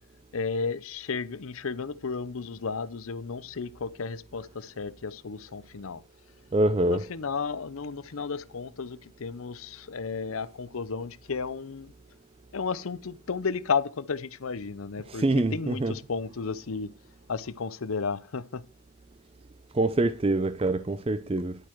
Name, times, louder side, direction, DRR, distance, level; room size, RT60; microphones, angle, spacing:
voice 1, 0.3-6.0 6.9-11.9 12.5-16.9 17.3-18.6, left 5 dB, 70° left, 0.6 m, -33 dB
voice 2, 6.5-7.0 15.1-16.0 19.7-21.6, right 2 dB, 25° right, 0.4 m, -25 dB
10.5 x 9.0 x 4.6 m
head